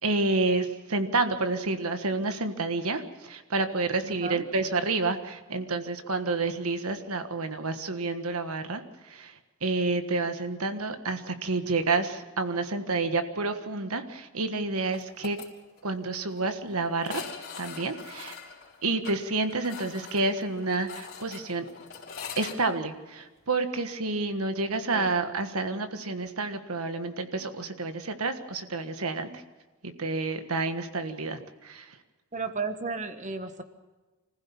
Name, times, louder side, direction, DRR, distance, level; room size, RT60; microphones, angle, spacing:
voice 1, 0.0-15.4 15.8-17.3 17.6-18.4 18.8-21.7 22.4-29.4 29.8-32.0, right 3 dB, 75° right, 8 dB, 1.5 m, -29 dB
voice 2, 4.0-4.4 24.9-25.1 32.3-33.6, right 4 dB, 35° right, 9 dB, 1.3 m, -34 dB
sound 1, 14.9-15.5 15.8-15.9 16.1-16.2 17.0-22.6, left 6 dB, 45° left, 4.3 m, -42 dB
25.5 x 15.5 x 7.1 m, 1.2 s
head